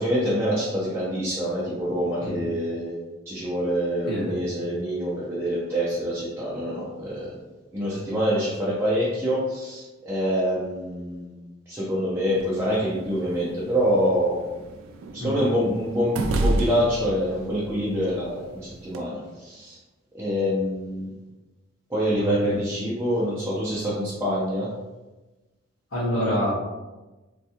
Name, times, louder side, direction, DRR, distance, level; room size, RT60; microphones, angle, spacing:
voice 1, 0.0-3.0 3.3-7.4 7.7-11.4 11.7-14.5 15.1-19.8 20.1-21.1 21.9-24.7, equal, 10° right, -8 dB, 0.5 m, -26 dB
voice 2, 4.1-4.4 15.2-15.3 22.2-22.6 25.9-26.5, equal, 85° left, -7 dB, 1.4 m, -27 dB
sound 1, 12.3-19.0, right 2 dB, 80° right, 0.3 m, -32 dB
3.4 x 2.3 x 2.7 m, 1.2 s
head